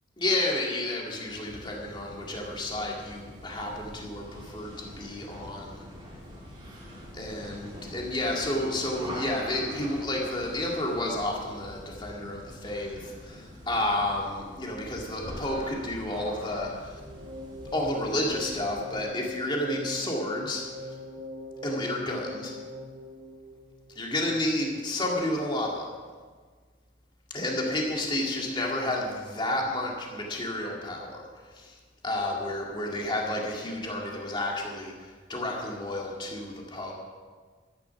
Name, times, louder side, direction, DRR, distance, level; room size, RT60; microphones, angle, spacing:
voice 1, 0.2-5.8 7.1-17.0 17.7-20.9 21.6-22.6 24.0-25.9 27.3-31.3 31.5-31.8 32.0-36.9, left 1 dB, 25° left, -1 dB, 2.2 m, -31 dB
sound 1, 1.3-19.0, equal, 25° right, 2.2 m, -44 dB
sound 2, 16.9-24.1, left 1 dB, 50° right, 1.9 m, -41 dB
12.5 x 10.5 x 5.9 m, 1.5 s
head